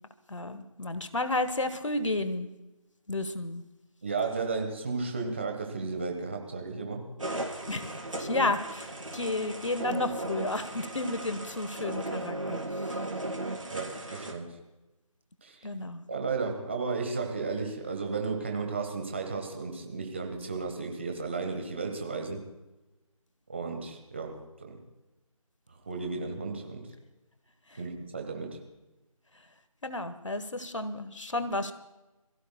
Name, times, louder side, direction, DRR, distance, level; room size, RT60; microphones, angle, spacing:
voice 1, 0.3-2.5 3.1-3.6 7.7-12.9 15.6-16.0 27.7-27.8 29.8-31.7, left 2 dB, 55° left, 11 dB, 1.2 m, -32 dB
voice 2, 4.0-7.1 13.7-14.6 15.4-15.6 16.1-22.4 23.5-24.8 25.7-26.9 27.8-28.6, right 4 dB, 20° right, 3 dB, 1.2 m, -34 dB
sound 1, 7.2-14.3, right 1 dB, 60° right, 3.5 m, -36 dB
27.5 x 16.0 x 2.2 m, 1.0 s
figure-of-eight pair, 165°, 19 cm